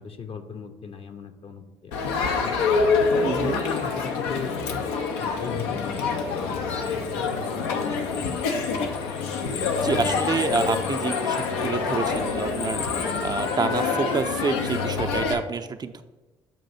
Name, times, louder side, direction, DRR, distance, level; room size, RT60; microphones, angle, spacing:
voice 1, 0.0-2.0 2.4-2.5 3.0-4.9 5.2-8.2, left 6 dB, 45° left, 8 dB, 0.7 m, -38 dB
Crowd, 1.9-15.3, left 5 dB, 85° left, 0.5 m, -26 dB
voice 2, 3.2-3.6 9.5-16.0, right 4 dB, 30° right, 9 dB, 0.4 m, -28 dB
7.2 x 2.6 x 5.6 m, 1.1 s
hypercardioid pair, 50°, 13 cm